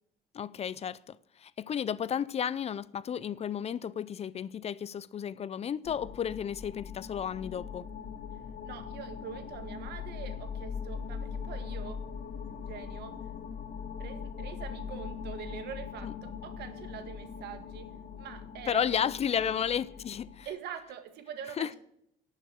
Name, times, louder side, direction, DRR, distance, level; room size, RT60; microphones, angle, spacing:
voice 1, 0.3-7.9 16.0-16.1 18.7-20.5 21.6-21.7, left 8 dB, 40° left, 0.5 m, -33 dB
sound 1, 5.8-20.5, left 6 dB, 55° left, 1.8 m, -41 dB
voice 2, 8.6-12.1 12.5-13.3 14.0-19.2 19.4-19.8 20.5-21.8, right 8 dB, 75° right, 1.8 m, -44 dB
11.5 x 6.6 x 7.6 m
cardioid pair, 110°, 17 cm